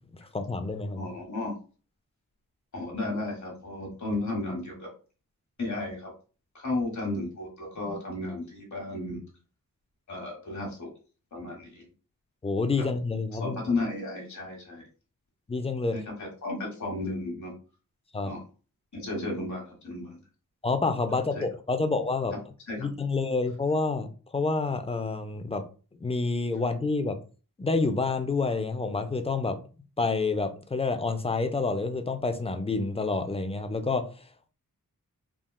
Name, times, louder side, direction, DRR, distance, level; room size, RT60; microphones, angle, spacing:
voice 1, 0.3-1.1 7.9-8.0 12.4-13.6 15.5-16.0 18.1-18.4 20.6-22.3 22.8-24.1 24.3-25.6 26.0-27.2 27.6-29.6 30.0-34.0, left 3 dB, 20° left, 0.4 m, -28 dB
voice 2, 0.9-1.5 2.7-4.9 5.6-6.1 6.5-9.2 10.1-10.9 11.3-11.9 12.8-12.9 13.4-14.8 15.9-17.5 18.2-18.4 18.9-20.1 21.3-21.4 22.7-22.8, left 2 dB, 55° left, 1.3 m, -33 dB
3.6 x 2.2 x 2.2 m
wide cardioid pair, 75°, 35 cm